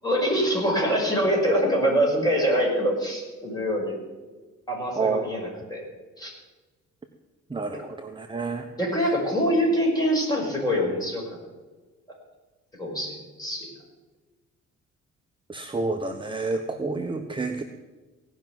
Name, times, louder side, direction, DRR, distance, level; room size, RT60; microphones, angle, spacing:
voice 1, 0.0-4.0 4.7-5.8 6.2-6.3 7.7-7.8 8.8-11.2 12.8-13.7, equal, 15° left, -2 dB, 5.9 m, -24 dB
voice 2, 5.0-5.3 7.5-8.6 15.5-17.6, right 3 dB, 15° right, 4 dB, 1.0 m, -29 dB
17.5 x 6.0 x 9.2 m, 1.3 s
cardioid pair, 90°, 30 cm